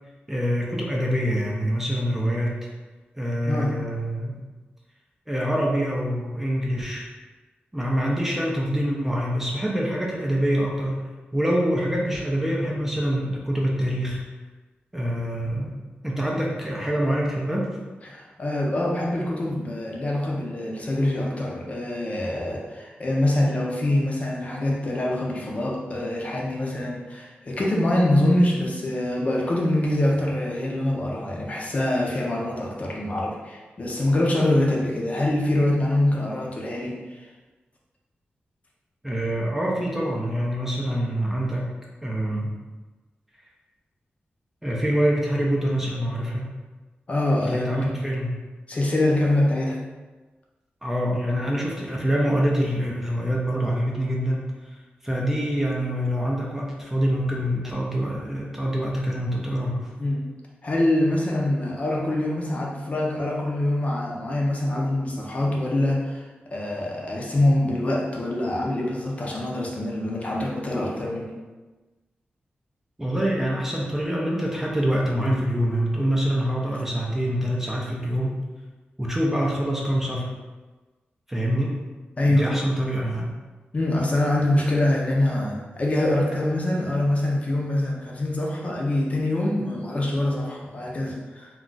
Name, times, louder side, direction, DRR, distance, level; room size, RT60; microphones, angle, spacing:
voice 1, 0.3-2.6 3.2-4.4 5.3-7.1 7.7-14.2 14.9-15.7 16.0-17.7 39.0-41.7 42.0-42.5 44.6-46.5 47.4-48.4 50.8-54.5 55.0-59.9 73.0-78.4 79.0-80.3 81.3-81.8 82.2-83.3, equal, 10° right, -3 dB, 0.4 m, -25 dB
voice 2, 18.0-37.2 47.1-47.7 48.7-49.8 60.0-60.2 60.6-66.2 66.5-71.3 82.2-82.5 83.7-91.5, left 1 dB, 35° left, -2 dB, 0.6 m, -24 dB
2.3 x 2.3 x 3.8 m, 1.2 s
wide cardioid pair, 115°, 4 cm